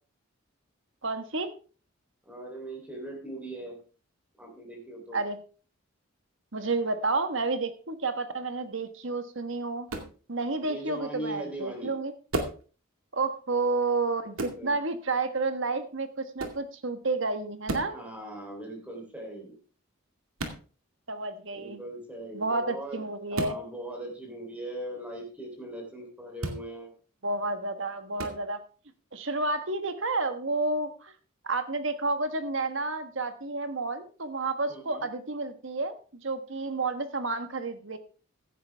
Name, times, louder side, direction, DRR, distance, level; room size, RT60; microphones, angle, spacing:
voice 1, 1.0-1.5 5.1-5.4 6.5-9.9 10.3-12.1 13.1-18.0 21.1-21.8 22.3-23.6 27.2-28.6 29.1-31.1 31.4-38.0, right 3 dB, 65° right, 9 dB, 1.4 m, -30 dB
voice 2, 2.2-3.8 4.4-5.2 10.6-12.0 14.6-14.8 17.8-19.5 21.5-23.0 23.3-26.9 34.7-35.1, right 1 dB, 5° right, 1 dB, 3.5 m, -40 dB
sound 1, 9.9-10.2 12.3-12.6 14.4-14.6 16.4-16.6 17.6-18.0 20.4-20.6 23.3-23.6 26.4-26.6 28.2-28.4, right 2 dB, 85° right, 2.2 m, -33 dB
15.5 x 10.0 x 3.5 m, 0.38 s
head